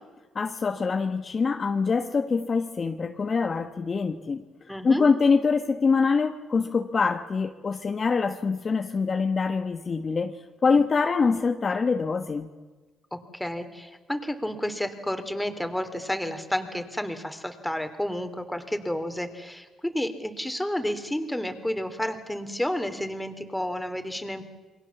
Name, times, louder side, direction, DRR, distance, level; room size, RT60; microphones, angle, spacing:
voice 1, 0.3-4.4 4.8-10.3 10.6-12.5, left 4 dB, 40° left, 6 dB, 1.5 m, -24 dB
voice 2, 4.7-5.1 13.1-24.4, left 1 dB, 5° left, 8 dB, 3.2 m, -31 dB
28.5 x 23.0 x 7.3 m, 1.3 s
cardioid pair, 90°, 0 cm